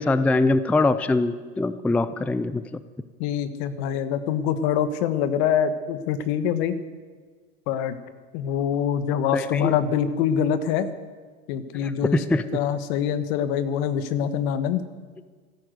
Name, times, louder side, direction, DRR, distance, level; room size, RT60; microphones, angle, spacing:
voice 1, 0.0-2.8 9.3-9.7 11.7-12.4, left 2 dB, 5° left, 14 dB, 0.4 m, -23 dB
voice 2, 3.2-6.8 7.7-8.0 8.3-10.9 11.5-12.2 12.5-14.8, left 8 dB, 65° left, 12 dB, 1.4 m, -24 dB
14.5 x 12.0 x 8.0 m, 1.5 s
hypercardioid pair, 105°, 35 cm